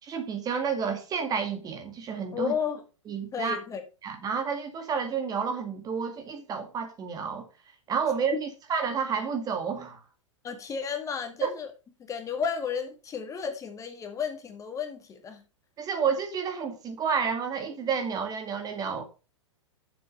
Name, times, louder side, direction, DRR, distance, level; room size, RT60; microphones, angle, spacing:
voice 1, 0.0-2.5 3.1-3.6 4.0-7.5 7.9-10.0 11.4-11.5 15.8-19.0, right 6 dB, 25° right, 2.1 m, -30 dB
voice 2, 2.3-2.8 3.3-3.8 8.3-8.4 10.4-11.7 12.0-15.4, left 6 dB, 20° left, 1.9 m, -32 dB
9.1 x 7.5 x 5.4 m
figure-of-eight pair, 100°, 16 cm